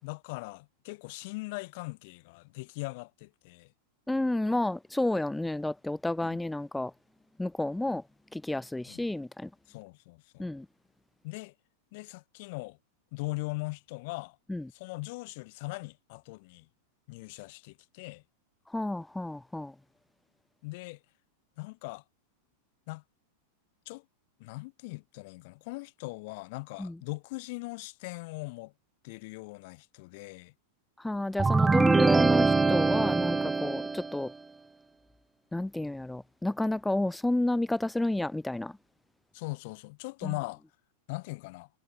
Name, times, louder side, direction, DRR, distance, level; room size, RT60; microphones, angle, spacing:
voice 1, 0.0-3.7 6.2-6.4 8.9-9.0 9.7-10.5 11.2-11.5 11.9-12.8 13.1-14.4 14.7-16.7 17.1-18.2 20.6-21.0 21.6-22.0 22.9-23.0 23.9-24.0 24.4-28.7 29.0-30.5 39.3-40.6 41.1-41.7, left 25 dB, 50° left, 4.2 m, -40 dB
voice 2, 4.1-6.9 7.4-8.0 8.3-9.5 10.4-10.6 14.5-14.6 18.7-19.7 26.8-26.9 31.0-34.3 35.5-38.7 40.2-40.3, left 1 dB, 5° left, 1.3 m, -30 dB
sound 1, 31.4-34.2, right 3 dB, 10° right, 1.7 m, -23 dB
figure-of-eight pair, 90°, 0 cm